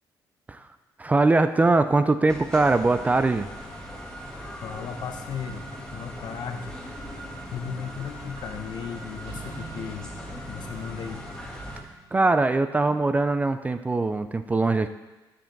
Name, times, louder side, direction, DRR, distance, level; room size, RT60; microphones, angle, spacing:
voice 1, 1.0-3.5 12.1-14.9, right 3 dB, 20° right, 10 dB, 0.4 m, -22 dB
sound 1, 2.3-11.8, equal, 10° left, 1.3 m, -39 dB
voice 2, 4.6-6.8 7.1-10.1 10.5-11.3, left 7 dB, 60° left, 7 dB, 0.9 m, -36 dB
sound 2, 9.2-13.0, right 4 dB, 70° right, 1.2 m, -47 dB
13.0 x 5.1 x 3.9 m, 1.1 s
cardioid pair, 110°, 8 cm